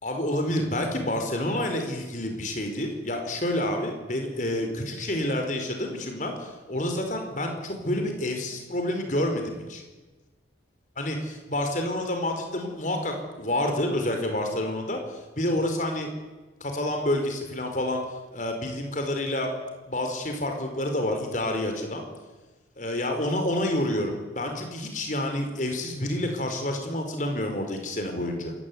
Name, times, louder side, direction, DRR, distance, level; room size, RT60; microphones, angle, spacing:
voice 1, 0.0-9.8 11.0-16.1 16.6-18.0 18.3-19.5 19.8-22.1 22.8-28.5, left 1 dB, 45° left, 4 dB, 4.8 m, -28 dB
26.5 x 16.0 x 9.7 m, 1.2 s
head